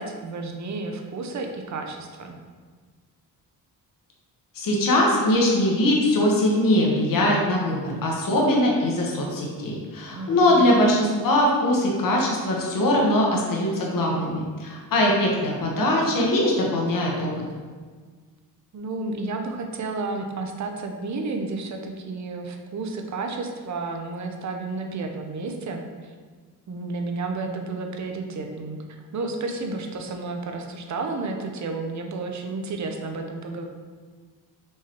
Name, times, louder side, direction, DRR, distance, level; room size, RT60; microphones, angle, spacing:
voice 1, 0.0-2.4 10.2-10.7 18.7-26.1 26.7-33.7, right 3 dB, 45° right, 4 dB, 0.6 m, -31 dB
voice 2, 4.5-17.3, left 1 dB, 55° left, -2 dB, 1.0 m, -21 dB
4.6 x 3.0 x 2.9 m, 1.5 s
cardioid pair, 70°, 40 cm